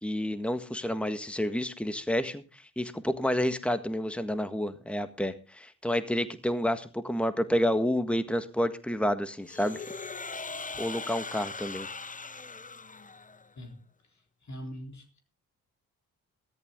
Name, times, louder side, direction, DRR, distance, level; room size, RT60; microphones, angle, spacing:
voice 1, 0.0-9.8 10.8-11.9, equal, 5° left, 10 dB, 1.6 m, -29 dB
sound 1, 9.4-13.5, left 4 dB, 20° left, 0.8 m, -40 dB
voice 2, 13.5-15.2, equal, 50° left, 4 dB, 3.9 m, -44 dB
14.5 x 13.5 x 3.7 m, 0.33 s
supercardioid pair, 45°, 37 cm